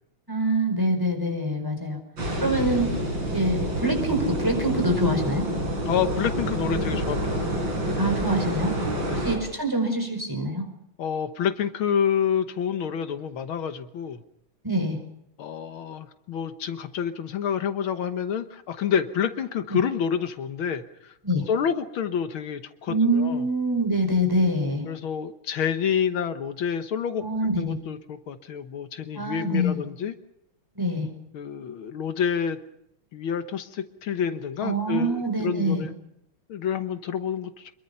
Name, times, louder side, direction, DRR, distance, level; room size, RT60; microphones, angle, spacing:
voice 1, 0.3-2.0 2.4-2.9 3.3-5.5 8.0-8.8 9.2-10.6 14.6-15.0 19.7-19.8 21.2-21.5 22.9-24.8 27.2-27.8 29.1-29.8 30.7-31.1 34.6-35.8, right 1 dB, 10° right, 4 dB, 5.0 m, -25 dB
sound 1, 2.2-9.4, right 1 dB, 65° right, 5.9 m, -28 dB
voice 2, 5.9-7.5 9.0-9.3 11.0-14.2 15.4-21.1 21.5-23.4 24.8-27.2 27.6-30.1 31.3-32.6 33.1-35.9 36.5-37.7, left 7 dB, 75° left, 9 dB, 2.0 m, -28 dB
26.5 x 22.5 x 5.6 m, 0.79 s
omnidirectional pair, 2.3 m